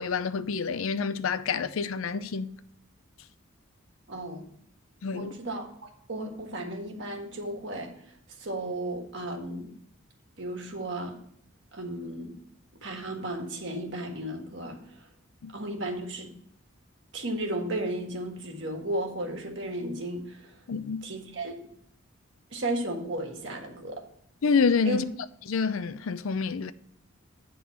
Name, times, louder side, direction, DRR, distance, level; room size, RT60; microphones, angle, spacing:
voice 1, 0.0-2.6 5.0-5.3 15.4-15.5 20.7-21.0 24.4-25.1 25.5-26.7, left 5 dB, 80° left, 0.5 m, -27 dB
voice 2, 4.1-4.4 5.1-7.9 8.4-9.7 10.4-11.2 11.7-12.3 12.8-15.0 15.5-16.3 17.1-20.5 21.0-21.7 22.5-24.0 24.8-25.0, right 1 dB, 60° right, 1.6 m, -34 dB
9.3 x 3.8 x 7.0 m
head